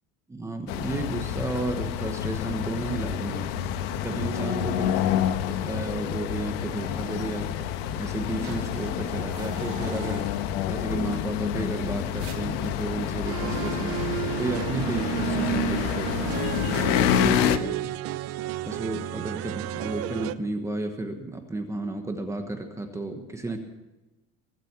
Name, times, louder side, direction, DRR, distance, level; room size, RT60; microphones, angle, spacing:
voice 1, 0.3-5.2 5.5-17.9 18.6-23.6, right 2 dB, 10° right, 4 dB, 1.2 m, -33 dB
sound 1, 0.7-17.6, left 10 dB, 85° left, 1.3 m, -28 dB
sound 2, 8.2-10.9 11.5-11.6 11.8-11.9 12.2-13.7, right 8 dB, 65° right, 2.5 m, -45 dB
sound 3, 13.3-20.4, right 14 dB, 40° right, 0.6 m, -32 dB
23.0 x 7.7 x 7.4 m, 1.1 s
cardioid pair, 170°, 36 cm